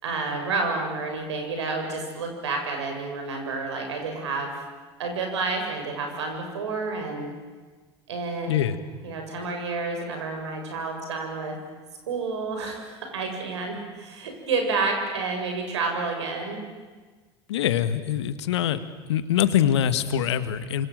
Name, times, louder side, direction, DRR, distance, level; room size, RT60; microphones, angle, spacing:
voice 1, 0.0-4.5 5.0-7.3 8.1-8.6 9.0-11.6 12.1-16.6, right 3 dB, 80° right, 3 dB, 6.8 m, -29 dB
voice 2, 17.5-18.8 19.1-20.9, left 10 dB, 75° left, 11 dB, 1.8 m, -23 dB
28.5 x 26.0 x 7.8 m, 1.4 s
hypercardioid pair, 75°, 14 cm